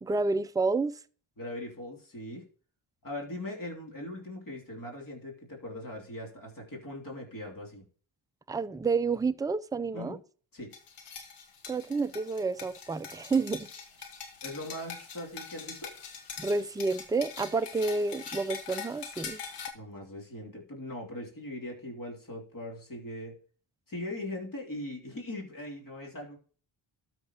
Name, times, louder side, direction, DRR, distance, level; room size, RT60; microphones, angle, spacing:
voice 1, 0.0-0.9 8.5-10.2 11.7-13.7 16.4-19.4, right 4 dB, 10° right, 0.4 m, -29 dB
voice 2, 1.4-2.4 3.0-7.8 9.9-10.2 10.5-10.7 14.4-15.9 19.7-23.4 23.9-26.4, left 1 dB, 40° left, 2.9 m, -40 dB
sound 1, 10.7-19.7, left 6 dB, 85° left, 1.4 m, -43 dB
13.0 x 6.0 x 2.8 m
cardioid pair, 60°, 50 cm